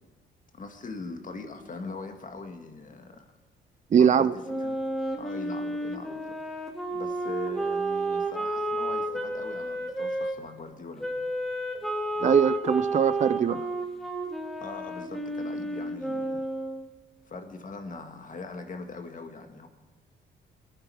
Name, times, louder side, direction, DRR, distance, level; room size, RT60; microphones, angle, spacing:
voice 1, 0.5-3.3 3.9-4.3 4.6-4.8 5.2-11.1 14.6-16.4 17.3-19.7, left 3 dB, 40° left, 1.9 m, -41 dB
voice 2, 3.9-4.3 12.2-13.7, right 7 dB, 35° right, 0.5 m, -21 dB
Wind instrument woodwind instrument, 4.4-10.3 11.0-16.9, right 1 dB, ahead, 2.1 m, -31 dB
22.0 x 10.0 x 4.9 m
cardioid pair, 90°, 20 cm